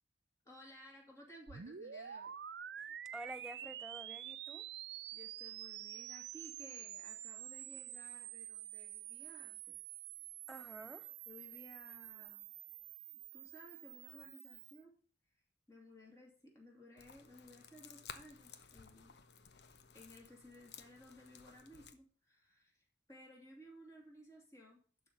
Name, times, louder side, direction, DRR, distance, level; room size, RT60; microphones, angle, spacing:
voice 1, 0.4-2.3 5.1-9.8 11.3-12.5 13.3-14.9 15.7-19.1 19.9-24.8, left 1 dB, 15° left, 2.7 m, -58 dB
sound 1, 1.5-14.8, right 11 dB, 80° right, 0.5 m, -48 dB
voice 2, 3.1-4.7 10.5-11.1, right 1 dB, 5° right, 0.3 m, -50 dB
sound 2, 17.0-22.0, left 6 dB, 80° left, 0.9 m, -56 dB
11.5 x 4.1 x 7.0 m
head